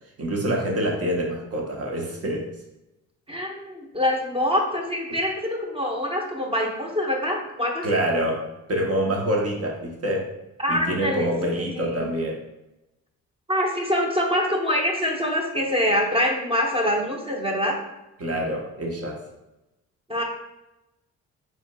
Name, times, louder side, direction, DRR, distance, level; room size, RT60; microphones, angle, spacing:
voice 1, 0.2-2.5 7.8-8.4 8.7-10.3 10.7-12.4 18.2-19.2, equal, 55° right, 0 dB, 1.1 m, -26 dB
voice 2, 3.3-8.0 10.6-12.1 13.5-17.8 20.1-20.2, left 1 dB, 20° right, 0 dB, 0.9 m, -25 dB
5.2 x 3.7 x 2.3 m, 0.95 s
cardioid pair, 90°, 30 cm